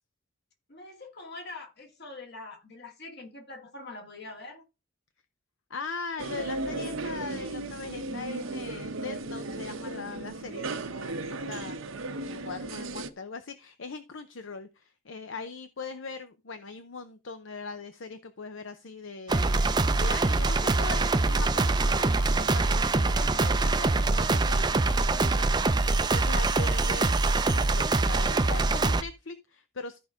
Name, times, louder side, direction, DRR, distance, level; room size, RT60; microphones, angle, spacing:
voice 1, 0.7-4.6, left 2 dB, 55° left, 2.2 m, -44 dB
voice 2, 5.7-11.9 12.3-27.1 27.4-30.0, left 4 dB, 70° left, 0.7 m, -40 dB
sound 1, 6.2-13.1, right 2 dB, 90° right, 1.0 m, -35 dB
sound 2, 19.3-29.0, right 3 dB, 20° right, 0.5 m, -24 dB
13.5 x 5.2 x 3.6 m
head